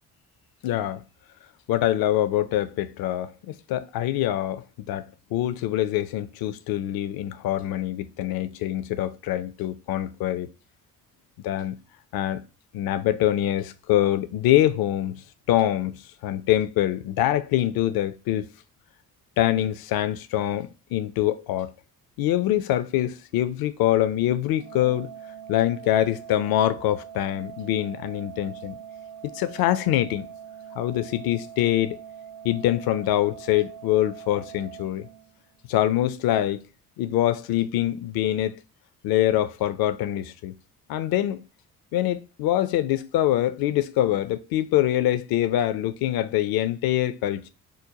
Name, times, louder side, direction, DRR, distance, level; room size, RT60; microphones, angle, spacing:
voice 1, 0.6-1.0 1.7-5.0 5.3-10.5 11.4-11.8 12.1-12.4 12.7-15.2 15.5-18.5 19.4-21.7 22.2-25.1 25.5-28.8 29.2-30.3 30.8-32.0 32.4-35.1 35.7-36.6 37.0-38.6 39.0-40.5 40.9-41.4 41.9-47.5, left 13 dB, 55° left, 0.5 m, -24 dB
Organ, 24.6-35.6, right 8 dB, 50° right, 0.6 m, -43 dB
5.1 x 2.2 x 2.8 m
figure-of-eight pair, 40°, 45 cm